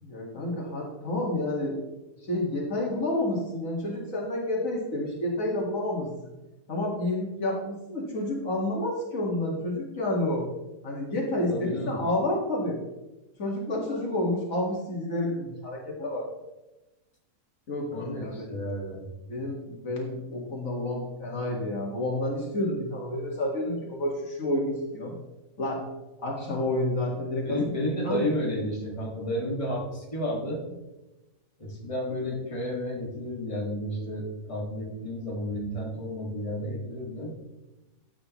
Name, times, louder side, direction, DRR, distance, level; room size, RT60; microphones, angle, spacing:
voice 1, 0.0-1.8 2.3-6.3 6.7-10.5 10.8-12.8 13.4-16.3 17.7-18.4 19.3-25.2 25.6-25.8 26.2-27.7 28.0-28.2, left 1 dB, 55° left, -2 dB, 2.2 m, -29 dB
voice 2, 11.5-12.0 17.9-19.1 27.4-30.6 31.6-37.4, left 1 dB, 20° left, -3 dB, 2.0 m, -32 dB
13.5 x 8.6 x 3.0 m, 1.0 s
omnidirectional pair, 1.7 m